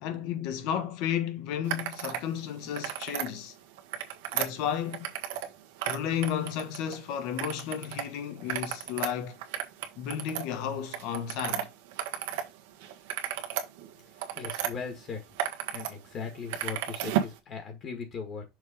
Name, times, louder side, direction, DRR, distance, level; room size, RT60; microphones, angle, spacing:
voice 1, 0.0-3.5 4.3-5.1 5.9-9.4 10.0-11.7, left 9 dB, 55° left, 1.2 m, -33 dB
sound 1, 1.6-2.2 2.6-3.3 3.8-5.5 5.8-7.0 7.4-8.0 8.4-12.5 12.8-14.7 15.2-15.9 16.2-17.4, right 11 dB, 85° right, 1.4 m, -34 dB
voice 2, 14.4-15.2 15.7-18.4, left 5 dB, 30° left, 1.6 m, -38 dB
6.4 x 3.4 x 5.0 m
cardioid pair, 180°, 0 cm